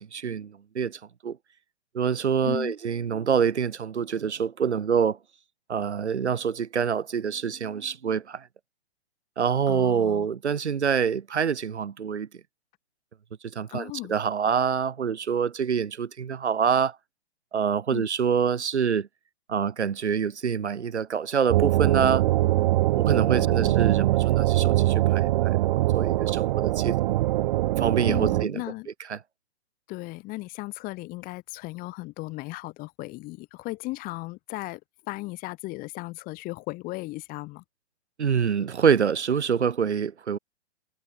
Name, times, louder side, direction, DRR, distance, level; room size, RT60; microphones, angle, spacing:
voice 1, 0.0-1.4 1.9-5.2 5.7-8.4 9.4-12.3 13.5-17.0 17.5-19.1 19.5-22.2 23.0-27.1 27.8-28.6 29.1-29.2 38.2-40.4, right 7 dB, 80° right, 6.1 m, -26 dB
voice 2, 2.4-2.7 9.7-10.3 13.7-14.1 17.9-18.1 23.3-23.9 28.1-28.9 29.9-34.8 35.1-37.6, left 21 dB, 25° left, 6.6 m, -36 dB
sound 1, 21.5-28.4, right 16 dB, 40° right, 7.1 m, -22 dB
hypercardioid pair, 150°, 34 cm